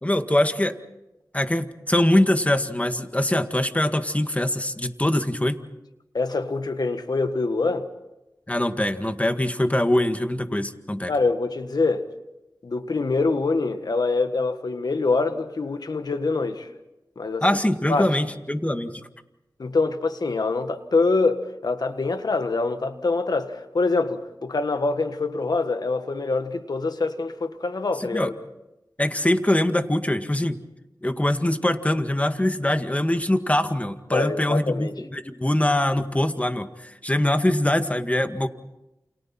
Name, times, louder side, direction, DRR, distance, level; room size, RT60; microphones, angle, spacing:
voice 1, 0.0-0.8 1.3-5.6 8.5-11.1 17.4-19.1 28.0-28.3 29.0-30.6 31.0-38.5, left 1 dB, 20° left, 1.9 m, -23 dB
voice 2, 6.1-7.9 11.1-12.1 12.6-16.7 17.2-17.4 17.9-18.1 19.6-28.3 34.1-35.0, left 3 dB, 75° left, 1.6 m, -25 dB
29.0 x 28.5 x 4.4 m
cardioid pair, 45°, 7 cm